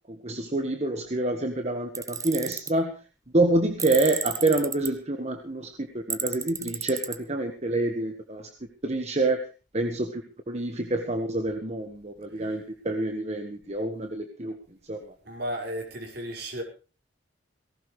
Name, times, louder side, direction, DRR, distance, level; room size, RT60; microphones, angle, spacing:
voice 1, 0.2-3.0 3.3-8.5 8.8-9.4 9.7-10.2 10.5-14.6 14.9-15.0, right 2 dB, 35° right, 6 dB, 1.5 m, -27 dB
Tools, 2.0-2.7 3.8-4.9 6.1-7.2, right 6 dB, 15° right, 0.9 m, -32 dB
voice 2, 15.3-16.6, equal, 60° right, 2 dB, 5.4 m, -34 dB
18.5 x 17.5 x 3.3 m, 0.34 s
head